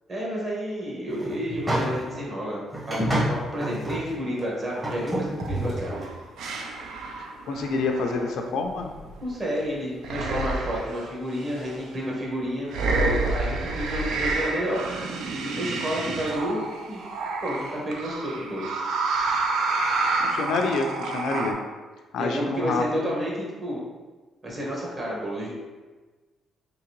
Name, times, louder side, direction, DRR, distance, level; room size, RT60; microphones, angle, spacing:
voice 1, 0.1-5.9 9.2-14.8 15.4-16.6 16.9-17.0 17.4-18.7 22.2-23.8 24.4-25.6, equal, 40° right, -4 dB, 1.4 m, -30 dB
sound 1, 1.1-2.2 2.7-4.0 4.4-4.5 4.8-6.0, right 1 dB, 25° right, 1.0 m, -28 dB
sound 2, 4.7-5.0 5.4-9.6 10.0-11.1 11.6-11.7 12.7-21.5, right 3 dB, 80° right, 0.4 m, -29 dB
voice 2, 7.2-8.9 20.2-21.6 22.1-23.2, left 3 dB, 75° left, 3 dB, 0.4 m, -27 dB
3.8 x 2.8 x 3.0 m, 1.3 s
cardioid pair, 90°, 0 cm